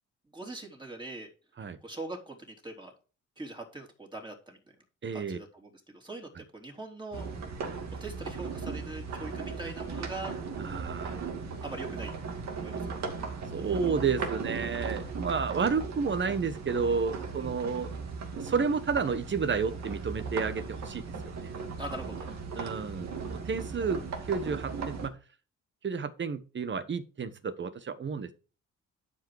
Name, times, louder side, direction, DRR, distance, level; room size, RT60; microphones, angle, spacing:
voice 1, 0.3-1.3 1.8-2.9 3.4-4.6 5.1-7.3 8.0-10.3 11.6-12.1 12.5-12.9 17.4-17.6 21.8-22.3, right 2 dB, 15° right, 1 dB, 3.5 m, -42 dB
voice 2, 5.0-5.4 10.6-11.3 13.5-17.9 18.3-21.5 22.5-25.2 25.8-28.3, right 5 dB, 40° right, 12 dB, 1.3 m, -31 dB
sound 1, 7.1-25.1, right 5 dB, 60° right, 2.6 m, -37 dB
11.5 x 5.3 x 4.8 m, 0.35 s
cardioid pair, 90°, 30 cm